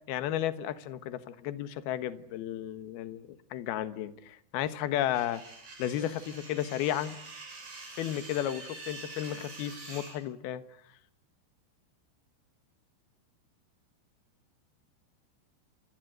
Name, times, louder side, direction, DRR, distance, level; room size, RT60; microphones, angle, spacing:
voice 1, 0.1-5.4 5.8-7.2 7.9-10.6, left 11 dB, 65° left, 12 dB, 2.8 m, -33 dB
sound 1, 5.1-10.1, right 3 dB, 50° right, 9.2 m, -46 dB
29.0 x 25.0 x 7.9 m, 0.68 s
omnidirectional pair, 5.7 m